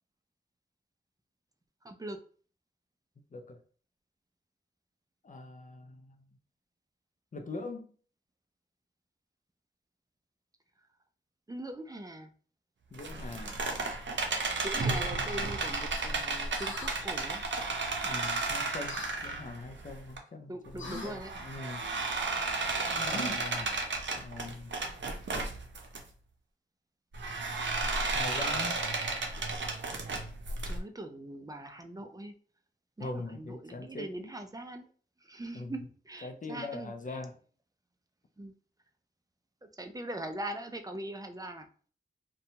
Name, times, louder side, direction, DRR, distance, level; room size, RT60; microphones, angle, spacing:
voice 1, 1.8-2.2 11.5-12.3 14.6-17.4 20.5-21.3 30.7-32.3 33.0-34.9 35.2-37.2 38.4-38.5 39.8-41.7, right 1 dB, 20° right, 0.4 m, -41 dB
voice 2, 5.2-6.2 7.3-7.9 12.9-13.6 18.0-21.9 22.6-23.8 24.2-24.8 28.1-28.8 33.0-34.3 35.5-35.9 36.2-37.4, left 3 dB, 40° left, 0.5 m, -42 dB
sound 1, 12.9-20.2 20.7-26.0 27.1-30.8, right 3 dB, 70° right, 0.5 m, -33 dB
sound 2, 16.5-17.0 18.9-19.1 20.8-21.1 23.0-23.6, left 1 dB, 75° left, 0.8 m, -41 dB
2.6 x 2.2 x 2.8 m
wide cardioid pair, 65°, 20 cm